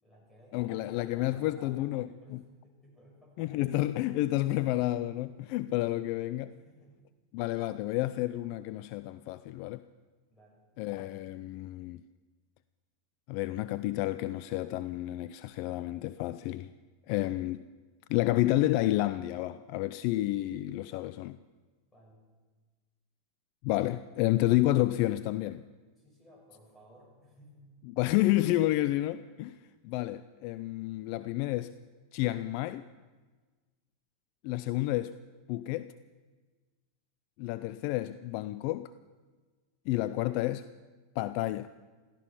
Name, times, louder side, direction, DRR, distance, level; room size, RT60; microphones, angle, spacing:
voice 1, 0.0-3.6 6.5-7.1 10.3-10.7 21.9-22.3 26.0-27.8, equal, 15° left, 6.1 m, -58 dB
voice 2, 0.5-2.4 3.4-6.5 7.3-9.8 10.8-12.0 13.3-16.7 17.1-17.7 18.1-21.4 23.6-25.6 28.0-29.6 29.8-31.7 32.1-32.9 34.4-35.2 35.5-35.9 37.4-38.9 39.9-40.7 41.2-41.7, left 16 dB, 55° left, 0.4 m, -30 dB
16.0 x 14.5 x 5.8 m
supercardioid pair, 125°, 0 cm